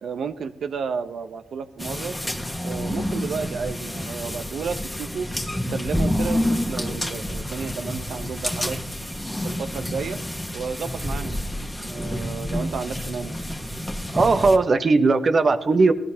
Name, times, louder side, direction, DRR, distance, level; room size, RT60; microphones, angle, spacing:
voice 1, 0.0-2.2 2.6-5.3 5.7-8.8 9.4-10.2 10.5-13.4, right 6 dB, 75° right, 9 dB, 0.8 m, -32 dB
sound 1, 1.8-14.6, equal, 5° left, 1.4 m, -29 dB
voice 2, 14.1-15.9, right 3 dB, 50° right, 8 dB, 1.0 m, -18 dB
18.0 x 13.0 x 2.8 m, 0.85 s
cardioid pair, 55°, 0 cm